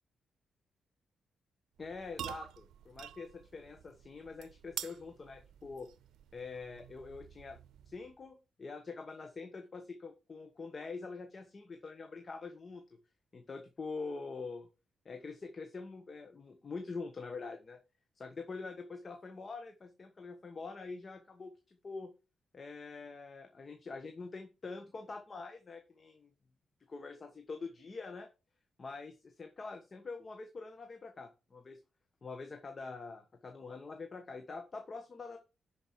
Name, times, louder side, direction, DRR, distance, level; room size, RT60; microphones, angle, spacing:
voice 1, 1.8-5.9 6.3-7.6 7.8-12.8 13.3-14.7 15.0-17.8 18.1-22.1 22.5-26.3 26.9-28.3 28.8-31.8 32.2-35.4, left 4 dB, 45° left, 6 dB, 1.3 m, -45 dB
sound 1, 1.8-8.2, right 11 dB, 85° right, 0.5 m, -48 dB
10.5 x 5.1 x 4.6 m, 0.30 s
cardioid pair, 65°, 0 cm